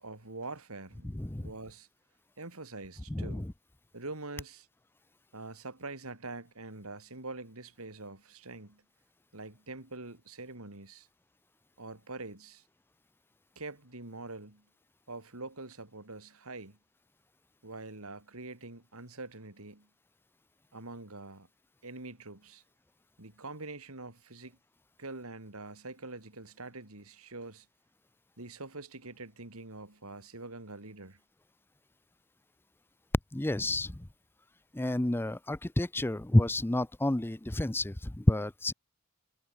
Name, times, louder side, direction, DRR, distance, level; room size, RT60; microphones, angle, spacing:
voice 1, 0.0-1.1 1.4-1.9 2.4-3.4 3.9-4.7 5.3-8.8 9.3-11.1 11.8-12.6 13.5-14.6 15.1-16.8 17.6-19.9 20.7-21.5 21.8-22.6 23.2-24.6 25.0-27.7 28.4-31.2, right 3 dB, 75° right, 3.3 m, -44 dB
voice 2, 1.1-1.5 3.1-3.5 33.3-34.0 34.7-38.7, left 1 dB, 10° left, 0.5 m, -29 dB
head